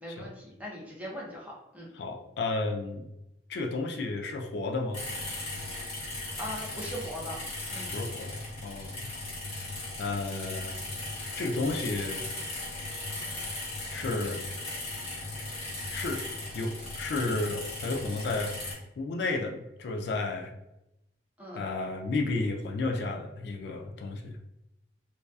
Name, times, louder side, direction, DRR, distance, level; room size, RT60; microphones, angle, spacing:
voice 1, 0.0-1.9 6.0-7.4 7.7-7.9 21.4-21.6, equal, 10° right, -4 dB, 0.6 m, -40 dB
voice 2, 1.9-3.1 3.5-5.0 7.9-9.1 9.5-9.7 10.0-10.8 11.4-12.3 13.9-14.4 15.9-16.2 16.5-18.5 19.0-20.5 21.6-24.4, left 3 dB, 65° left, 2 dB, 0.3 m, -32 dB
sound 1, 4.9-18.8, left 2 dB, 35° left, 0.8 m, -37 dB
2.6 x 2.2 x 2.2 m, 0.88 s
head